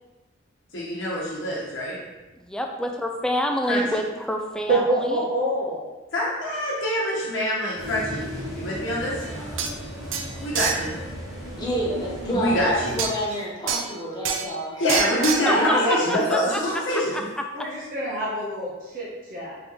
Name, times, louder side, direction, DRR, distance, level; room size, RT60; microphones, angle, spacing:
voice 1, 0.7-2.0 3.7-3.8 6.1-8.2 8.5-9.2 10.4-11.0 12.3-13.0 14.3-14.4 14.7-17.3, equal, 85° left, -6 dB, 0.9 m, -25 dB
voice 2, 2.4-5.2 15.5-15.6 15.9-17.7, equal, 5° left, 2 dB, 0.3 m, -28 dB
voice 3, 4.7-5.8 14.8-16.2 17.5-19.6, right 1 dB, 45° right, -6 dB, 0.8 m, -26 dB
sound 1, 7.8-13.0, equal, 20° right, 1.3 m, -35 dB
sound 2, 9.3-9.4 9.6-9.7 10.1-10.8 13.0-13.1 13.7-13.9 14.2-14.6 14.9-15.5, right 7 dB, 90° right, 0.4 m, -27 dB
voice 4, 11.6-14.8 15.7-16.1, equal, 20° left, -5 dB, 0.9 m, -28 dB
3.8 x 3.7 x 3.0 m, 1.1 s
head